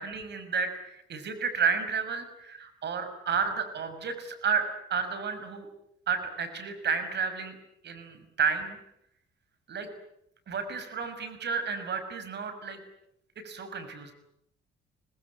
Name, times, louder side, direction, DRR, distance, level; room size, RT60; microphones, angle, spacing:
voice 1, 0.0-5.7 6.1-7.6 7.8-8.8 9.7-9.9 10.5-12.8 13.4-14.1, right 5 dB, 60° right, 9 dB, 6.1 m, -31 dB
26.0 x 20.0 x 9.9 m, 0.75 s
cardioid pair, 90°, 20 cm